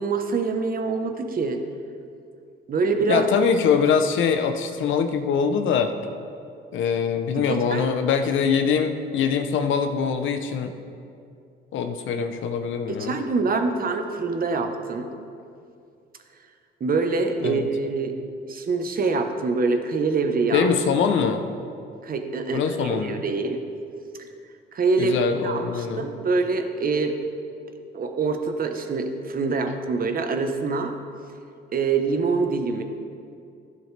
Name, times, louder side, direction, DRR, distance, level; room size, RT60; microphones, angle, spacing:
voice 1, 0.0-1.6 2.7-3.3 7.4-7.9 12.9-15.1 16.8-18.1 18.5-20.7 22.0-23.6 24.7-27.2 27.9-30.9 31.7-32.8, right 4 dB, 45° right, 5 dB, 1.0 m, -25 dB
voice 2, 3.1-5.9 6.7-10.7 11.7-13.2 17.4-17.7 20.5-21.4 22.5-23.2 25.0-26.1, left 6 dB, 75° left, 7 dB, 0.8 m, -23 dB
11.0 x 11.0 x 3.3 m, 2.4 s
cardioid pair, 90°, 20 cm